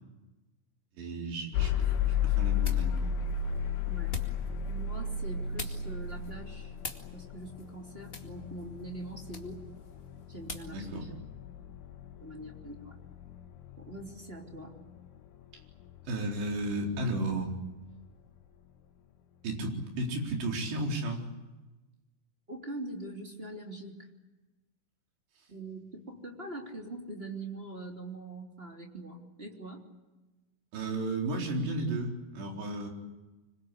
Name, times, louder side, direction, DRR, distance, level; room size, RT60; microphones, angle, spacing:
voice 1, 1.0-1.9 2.2-3.2 10.7-11.1 16.1-17.5 19.4-21.2 30.7-32.9, right 2 dB, 65° right, 1 dB, 6.3 m, -33 dB
sound 1, 1.5-17.5, left 7 dB, 85° left, 4.2 m, -34 dB
sound 2, 1.6-10.8, left 2 dB, 35° left, 0.9 m, -47 dB
voice 2, 3.8-4.1 4.7-6.7 7.1-9.7 10.3-10.8 12.2-13.0 13.8-14.7 22.5-24.0 25.5-29.9, right 2 dB, 15° right, 1 dB, 2.7 m, -43 dB
26.0 x 24.0 x 8.5 m, 1.1 s
omnidirectional pair, 5.3 m